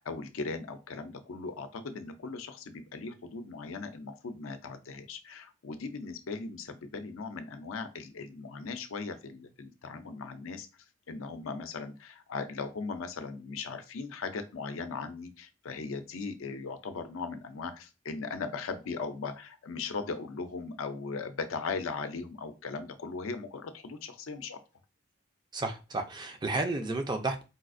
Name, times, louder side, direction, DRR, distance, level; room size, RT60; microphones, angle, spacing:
voice 1, 0.0-10.7 11.1-24.6, left 4 dB, 70° left, 0.5 m, -38 dB
voice 2, 25.5-27.4, right 2 dB, 20° right, 0.4 m, -32 dB
4.0 x 2.4 x 2.5 m
head